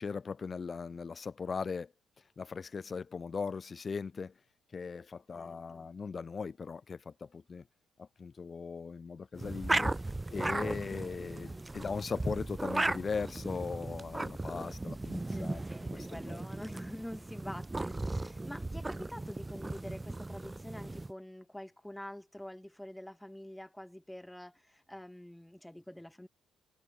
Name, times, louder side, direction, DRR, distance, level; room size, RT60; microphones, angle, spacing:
voice 1, 0.0-1.9 2.4-4.3 4.7-7.6 8.0-9.9 10.3-15.6 15.9-16.4, left 5 dB, 35° left, 3.5 m, -39 dB
voice 2, 5.3-5.9 11.5-12.2 15.3-26.3, left 1 dB, 5° left, 3.7 m, -47 dB
sound 1, 9.3-21.1, right 2 dB, 15° right, 2.0 m, -36 dB
cardioid pair, 90°, 0 cm